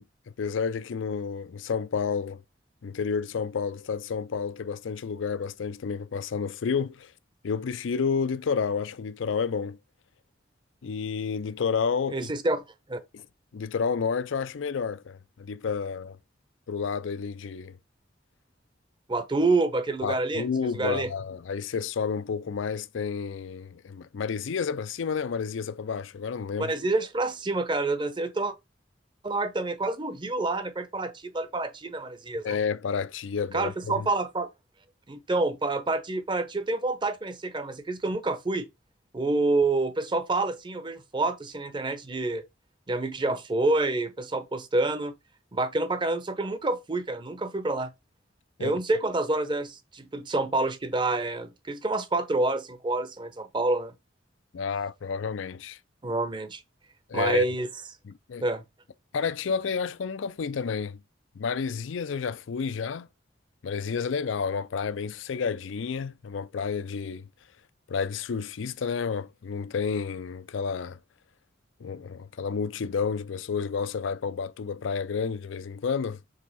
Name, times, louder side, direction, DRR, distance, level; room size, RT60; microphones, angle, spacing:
voice 1, 0.4-2.4 2.8-7.1 7.4-9.8 10.8-12.3 13.1-13.2 13.5-16.2 16.7-17.8 20.0-26.7 32.4-34.1 48.6-48.8 54.5-55.8 57.1-57.5 58.1-58.4 59.1-61.0 61.4-63.1 63.6-67.3 67.9-71.0 71.8-76.2, left 6 dB, 90° left, 0.4 m, -30 dB
voice 2, 12.1-12.6 12.9-13.0 19.1-20.5 20.8-21.1 26.6-28.5 29.2-32.6 33.5-34.5 35.1-38.7 39.1-42.4 42.9-45.1 45.5-47.9 48.6-53.9 56.0-56.6 57.1-57.7 58.4-58.6, right 2 dB, 25° right, 0.7 m, -28 dB
6.5 x 3.5 x 4.1 m
head